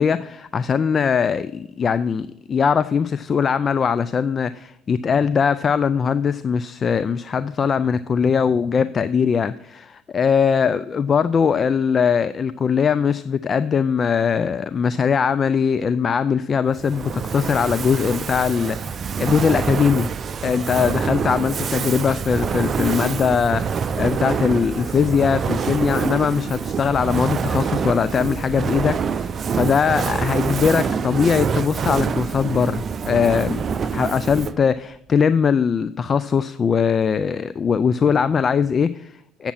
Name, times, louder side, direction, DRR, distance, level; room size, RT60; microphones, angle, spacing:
voice 1, 0.0-20.1 20.4-33.7 33.9-39.5, left 6 dB, 35° left, 15 dB, 0.4 m, -21 dB
Fire, 16.7-34.7, right 6 dB, 40° right, 0.5 m, -26 dB
8.5 x 7.3 x 5.5 m, 0.77 s
supercardioid pair, 85°, 0 cm